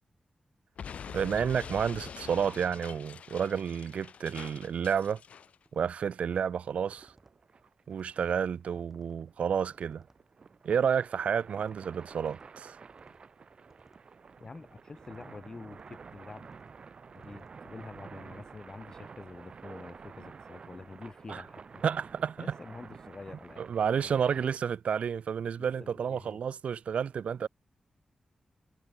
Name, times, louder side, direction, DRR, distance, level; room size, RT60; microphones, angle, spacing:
Explosion, 0.8-5.6, left 7 dB, 85° left, 0.9 m, -44 dB
voice 1, 1.1-5.2 5.7-7.1 7.9-10.0 10.6-12.8 21.3-21.4 21.8-22.6 23.6-27.5, right 7 dB, 80° right, 0.4 m, -30 dB
sound 1, 4.1-4.4 4.9-5.2 5.6-5.9 7.0-7.4 7.9-8.3 8.8-9.2 9.8-10.2 11.4-11.8 12.2-12.5 12.9-13.2 13.7-14.0 15.0-15.3 15.7-16.0 16.4-16.8 17.2-17.6, right 2 dB, 15° right, 7.0 m, -63 dB
sound 2, 6.2-24.6, right 5 dB, 50° right, 1.8 m, -51 dB
voice 2, 14.4-16.5 17.1-21.8 22.4-23.7 24.0-24.5 25.6-26.4, left 3 dB, 35° left, 1.6 m, -47 dB
wide cardioid pair, 150°, 2 cm